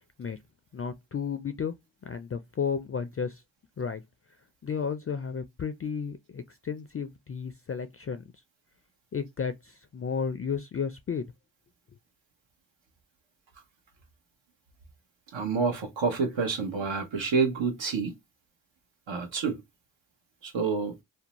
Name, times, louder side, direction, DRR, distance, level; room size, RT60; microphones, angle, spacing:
voice 1, 0.7-1.8 2.0-3.4 3.8-4.0 4.6-8.2 9.1-11.3, left 6 dB, 35° left, 0.4 m, -33 dB
voice 2, 15.3-18.1 19.1-19.6 20.4-20.9, right 5 dB, 80° right, 0.9 m, -28 dB
2.6 x 2.1 x 2.9 m
cardioid pair, 45°, 45 cm